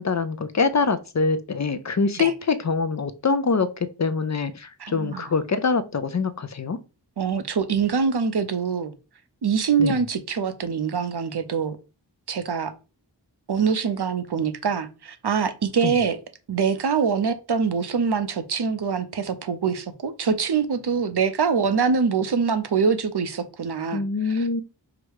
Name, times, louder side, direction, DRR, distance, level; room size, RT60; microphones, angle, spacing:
voice 1, 0.0-6.8 9.8-10.0 15.8-16.0 23.9-24.6, left 4 dB, 40° left, 0.5 m, -24 dB
voice 2, 4.8-5.3 7.2-8.9 9.4-11.8 12.3-12.7 13.5-16.2 16.5-24.6, right 6 dB, 65° right, 0.6 m, -24 dB
4.8 x 2.1 x 4.7 m
wide cardioid pair, 55°, 43 cm